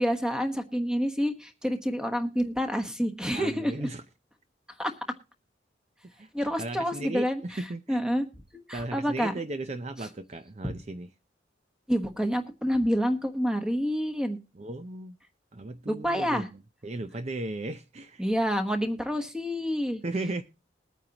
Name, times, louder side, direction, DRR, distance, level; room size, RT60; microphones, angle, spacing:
voice 1, 0.0-3.9 4.8-4.9 6.3-7.4 7.9-8.2 8.7-9.3 11.9-14.4 15.9-16.4 18.2-20.0, equal, 5° right, 1.1 m, -28 dB
voice 2, 3.3-4.0 6.1-6.3 6.6-8.0 8.7-11.1 14.5-15.2 15.5-18.2 20.0-20.4, right 2 dB, 40° right, 0.6 m, -36 dB
21.5 x 9.1 x 2.9 m
head